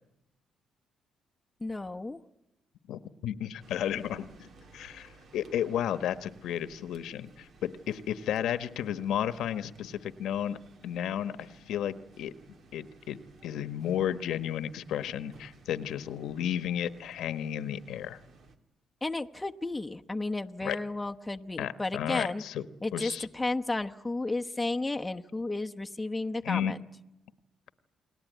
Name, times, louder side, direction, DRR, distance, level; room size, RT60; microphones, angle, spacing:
voice 1, 1.6-2.2 19.0-22.4 22.8-26.8, left 2 dB, 15° left, 4 dB, 1.0 m, -33 dB
voice 2, 2.9-12.3 12.7-18.2 20.6-20.8 21.6-22.7 22.9-23.3 26.4-26.7, left 10 dB, 80° left, 12 dB, 1.2 m, -33 dB
sound 1, 3.6-18.6, right 3 dB, 60° right, 2.7 m, -58 dB
29.5 x 21.0 x 9.3 m, 0.95 s
cardioid pair, 90°, 0 cm